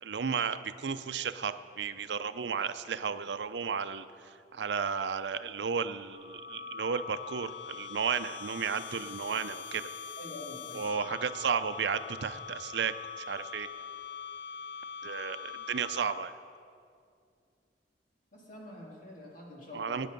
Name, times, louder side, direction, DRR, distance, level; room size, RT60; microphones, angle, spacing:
voice 1, 0.0-9.9 10.7-13.7 15.0-16.3 19.7-20.1, right 6 dB, 80° right, 12 dB, 0.5 m, -33 dB
sound 1, 6.1-16.5, left 6 dB, 65° left, 0.4 m, -43 dB
voice 2, 10.2-10.8 11.1-11.2 18.3-20.1, left 2 dB, 50° left, -3 dB, 3.0 m, -46 dB
18.0 x 9.4 x 5.3 m, 2.3 s
head